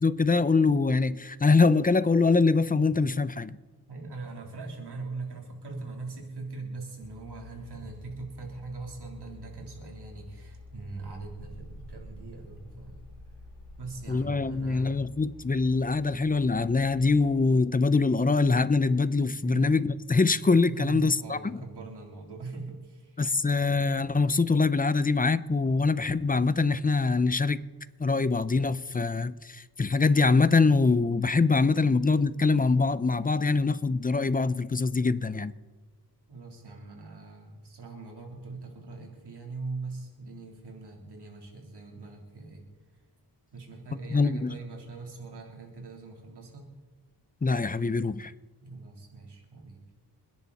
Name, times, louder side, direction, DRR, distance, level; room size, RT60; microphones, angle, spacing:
voice 1, 0.0-3.5 14.1-21.6 23.2-27.6 28.0-35.5 44.1-44.6 47.4-48.3, left 4 dB, 20° left, 15 dB, 0.5 m, -24 dB
voice 2, 3.9-13.1 13.8-15.0 19.4-19.7 20.7-23.2 36.3-42.6 43.5-46.7 48.6-49.8, right 3 dB, 70° right, 1 dB, 3.6 m, -41 dB
sound 1, 7.0-17.3, left 2 dB, 50° left, 5.2 m, -49 dB
29.5 x 10.5 x 4.2 m, 1.3 s
wide cardioid pair, 115°, 41 cm